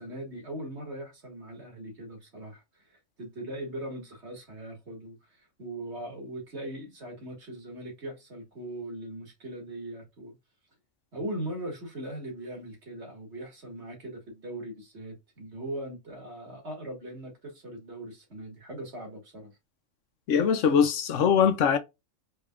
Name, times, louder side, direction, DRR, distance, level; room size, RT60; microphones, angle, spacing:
voice 1, 0.0-10.3 11.1-19.5, right 1 dB, 60° right, 2.2 m, -40 dB
voice 2, 20.3-21.8, left 7 dB, 75° left, 1.0 m, -22 dB
4.5 x 3.5 x 2.4 m
omnidirectional pair, 1.3 m